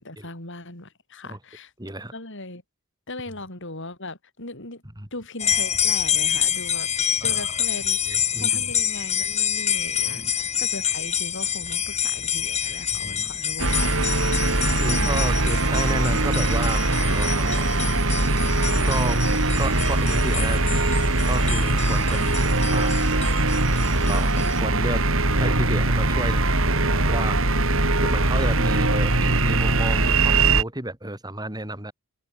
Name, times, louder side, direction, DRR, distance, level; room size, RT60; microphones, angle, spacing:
voice 1, 0.0-1.7 2.1-2.6 3.1-4.8 5.1-8.0 8.4-13.8 14.9-15.4, left 2 dB, 60° left, 7.3 m, -38 dB
voice 2, 1.8-2.1 5.0-5.1 7.2-7.5 8.1-8.7 10.1-10.3 12.9-13.3 14.7-16.8 17.1-17.7 18.8-19.2 19.6-20.6 21.3-23.0 24.1-25.0 25.4-26.4 26.8-27.4 28.0-31.9, right 1 dB, 20° right, 4.7 m, -31 dB
sound 1, 5.4-24.6, left 9 dB, 30° left, 2.1 m, -27 dB
sound 2, 13.6-30.6, right 2 dB, 65° right, 4.4 m, -21 dB
head